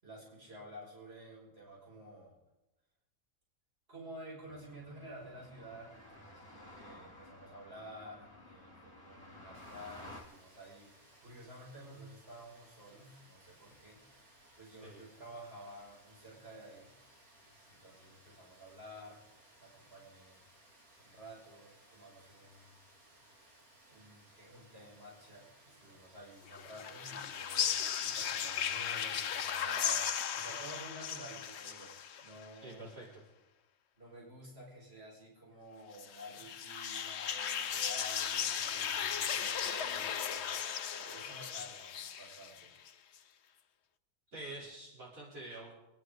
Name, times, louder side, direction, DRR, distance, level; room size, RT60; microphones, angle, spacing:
voice 1, 0.0-2.4 3.9-14.2 14.6-16.9 17.7-19.2 19.6-20.4 21.0-22.8 23.9-32.9 34.0-40.6 40.9-42.7, right 1 dB, 45° right, -4 dB, 5.6 m, -51 dB
sound 1, 4.5-10.2, left 1 dB, 20° right, 3.7 m, -53 dB
Rain, 9.5-29.2, right 1 dB, 90° right, 3.7 m, -62 dB
voice 2, 14.7-15.0 32.6-33.2 44.3-45.7, right 2 dB, 75° right, -7 dB, 5.2 m, -47 dB
sound 2, 26.5-32.5 35.9-42.9, left 8 dB, 55° left, 0.9 m, -36 dB
28.0 x 10.5 x 4.9 m, 0.97 s
omnidirectional pair, 1.5 m